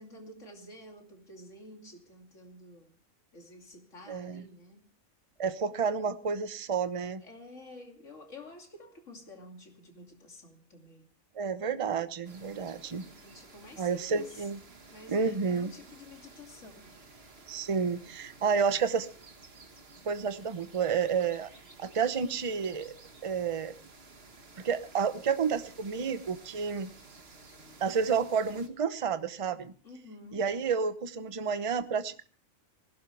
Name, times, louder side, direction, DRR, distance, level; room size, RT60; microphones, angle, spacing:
voice 1, 0.0-3.0 3.3-4.8 7.2-11.1 13.0-14.5 14.9-17.0 29.8-30.5, left 2 dB, 60° left, 2 dB, 3.0 m, -50 dB
voice 2, 4.1-4.5 5.4-7.2 11.3-13.0 13.8-14.6 15.1-15.7 17.5-19.1 20.0-21.5 21.8-22.9 23.2-23.7 24.6-26.9 27.8-29.7 30.3-32.2, right 6 dB, 30° right, 12 dB, 0.7 m, -30 dB
sound 1, 12.2-28.7, right 3 dB, 50° right, 1.9 m, -54 dB
19.5 x 16.5 x 3.3 m, 0.41 s
omnidirectional pair, 1.4 m